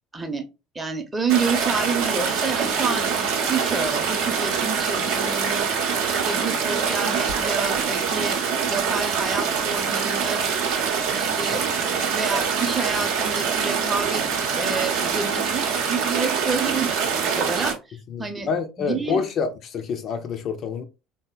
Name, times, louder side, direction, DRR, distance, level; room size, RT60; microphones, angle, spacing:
voice 1, 0.1-0.4 0.7-5.7 6.1-8.4 8.7-10.4 11.1-11.6 11.9-18.5 18.8-19.2, right 4 dB, 20° right, 0.6 m, -29 dB
sound 1, 1.3-17.7, right 6 dB, 60° right, 0.6 m, -24 dB
voice 2, 18.1-20.8, left 6 dB, 45° left, 0.3 m, -27 dB
3.5 x 2.0 x 2.2 m
figure-of-eight pair, 65°, 0 cm